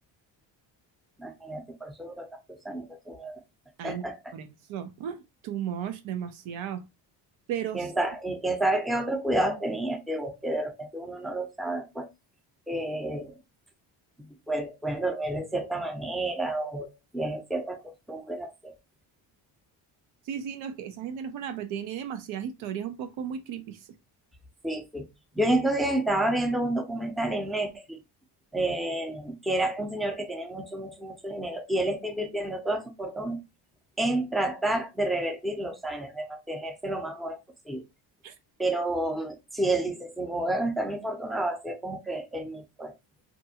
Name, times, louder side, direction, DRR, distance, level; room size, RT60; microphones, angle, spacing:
voice 1, 1.2-3.4 3.8-4.2 7.7-12.1 12.7-13.4 14.5-17.8 18.1-18.7 24.6-25.1 25.3-28.0 28.5-33.4 34.0-37.4 37.7-37.8 38.6-42.9, right 1 dB, ahead, 0.6 m, -30 dB
voice 2, 4.3-6.8 7.5-7.9 20.3-23.8 38.2-38.3, right 9 dB, 75° right, 0.6 m, -35 dB
2.5 x 2.3 x 2.7 m
supercardioid pair, 80°, 48 cm